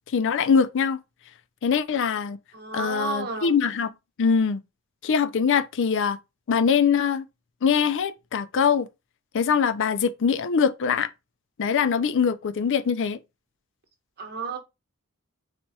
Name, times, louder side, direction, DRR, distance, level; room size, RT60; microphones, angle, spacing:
voice 1, 0.1-1.0 1.6-2.4 2.7-3.9 4.2-4.6 5.0-6.2 6.5-7.2 7.6-8.9 9.3-11.1 11.6-13.2, left 6 dB, 60° left, 0.4 m, -23 dB
voice 2, 2.5-3.6 14.2-14.6, right 4 dB, 45° right, 1.1 m, -32 dB
4.3 x 2.3 x 4.1 m
head